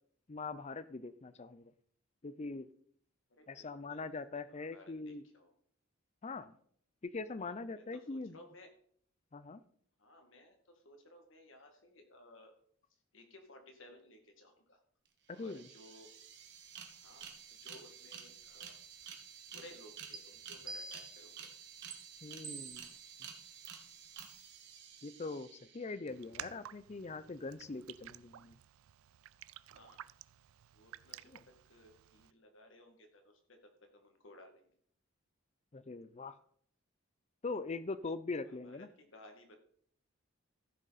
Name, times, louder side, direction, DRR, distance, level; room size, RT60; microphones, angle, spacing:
voice 1, 0.3-1.7 2.2-2.7 3.5-5.2 6.2-6.5 7.0-8.4 9.3-9.6 15.3-15.6 22.2-22.9 25.0-28.5 31.3-31.4 35.7-36.3 37.4-38.9, left 3 dB, 35° left, 15 dB, 0.5 m, -42 dB
voice 2, 3.3-5.5 7.4-8.7 10.0-12.5 12.9-14.8 15.3-16.1 16.9-18.8 19.5-21.5 29.7-30.0 30.7-33.6 33.9-34.7 38.4-39.6, left 1 dB, 65° left, 5 dB, 2.0 m, -58 dB
sound 1, 15.1-15.2 15.3-26.1, right 7 dB, 55° right, 1.6 m, -52 dB
sound 2, 20.1-20.2 20.7-21.3 21.9-22.0 22.4-23.0 23.6-23.7 24.2-24.4, right 4 dB, 25° right, 0.9 m, -46 dB
Raindrop, 26.1-32.3, right 12 dB, 90° right, 0.4 m, -53 dB
14.5 x 6.4 x 4.1 m, 0.63 s
head